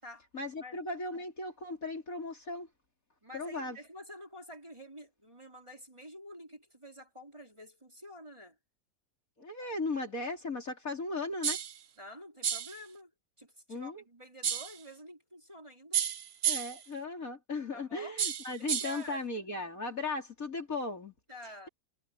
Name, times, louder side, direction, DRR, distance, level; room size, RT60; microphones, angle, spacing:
voice 1, 0.3-2.7 3.3-3.8 9.4-11.6 13.7-14.0 16.4-21.1, left 3 dB, 50° left, 4.3 m, -37 dB
voice 2, 3.2-8.6 12.0-13.1 13.4-16.0 17.7-18.2 18.6-19.5 21.3-21.7, left 1 dB, 15° right, 4.4 m, -49 dB
sound 1, 11.4-11.8 12.4-12.8 14.4-14.8 15.9-16.8 18.2-19.0, right 8 dB, 50° right, 0.8 m, -32 dB
omnidirectional pair, 1.8 m